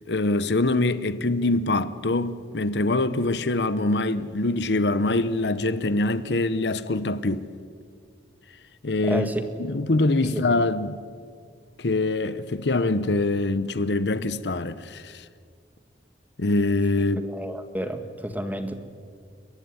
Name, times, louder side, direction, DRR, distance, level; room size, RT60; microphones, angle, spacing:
voice 1, 0.1-7.5 8.8-9.3 9.6-11.0 11.8-15.2 16.4-17.3, left 2 dB, 70° left, 0.9 m, -24 dB
voice 2, 9.0-9.4 10.2-10.6 17.2-18.7, right 1 dB, 10° right, 1.7 m, -31 dB
29.5 x 15.0 x 9.9 m
head